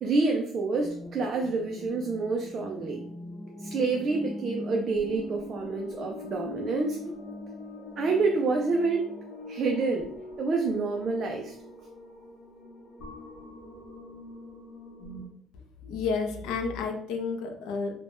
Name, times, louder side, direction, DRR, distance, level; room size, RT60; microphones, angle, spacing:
voice 1, 0.0-3.0 3.6-7.0 8.0-9.1 9.5-10.1 10.4-11.5, right 3 dB, 40° right, 2 dB, 0.3 m, -28 dB
sound 1, 0.8-15.3, left 1 dB, 50° left, 0.6 m, -42 dB
voice 2, 15.8-17.9, left 5 dB, 85° left, 5 dB, 0.4 m, -31 dB
2.5 x 2.1 x 3.4 m, 0.65 s
cardioid pair, 160°, 0 cm